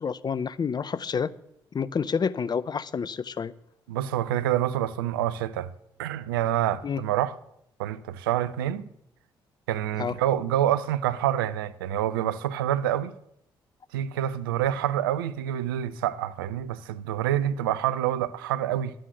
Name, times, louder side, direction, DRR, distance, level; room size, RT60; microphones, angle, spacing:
voice 1, 0.0-1.3 1.7-3.5 6.8-7.0 10.0-10.2, left 6 dB, 40° left, 0.6 m, -29 dB
voice 2, 3.9-5.7 6.0-7.3 7.8-8.9 9.7-13.1 13.9-18.9, right 11 dB, 85° right, 0.4 m, -27 dB
11.0 x 7.7 x 6.5 m
hypercardioid pair, 45°, 11 cm